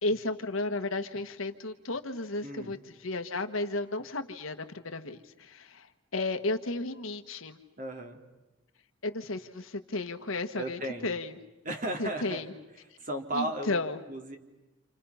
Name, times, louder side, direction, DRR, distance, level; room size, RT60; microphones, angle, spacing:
voice 1, 0.0-5.9 6.1-7.6 9.0-11.4 12.0-12.5 13.3-14.0, left 2 dB, 70° left, 8 dB, 1.4 m, -33 dB
voice 2, 2.4-2.7 7.8-8.2 10.5-11.2 11.6-12.4 13.0-13.8 14.1-14.4, right 1 dB, 40° right, 3 dB, 2.6 m, -35 dB
29.5 x 28.0 x 5.7 m, 1.1 s
head